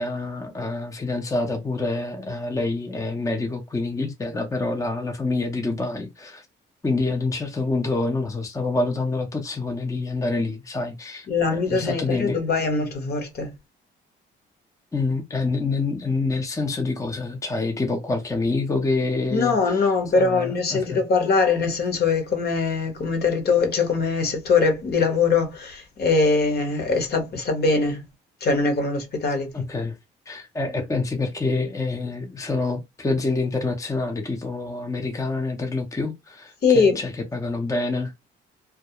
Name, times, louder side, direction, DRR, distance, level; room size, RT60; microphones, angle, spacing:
voice 1, 0.0-6.5 6.8-11.3 11.5-12.4 14.9-19.8 20.1-21.0 29.5-30.0 30.3-38.1, left 3 dB, 15° left, 0.6 m, -27 dB
voice 2, 11.3-13.5 19.3-28.0 28.4-29.5 36.6-37.0, left 4 dB, 55° left, 1.0 m, -22 dB
2.3 x 2.1 x 2.8 m
cardioid pair, 90°, 20 cm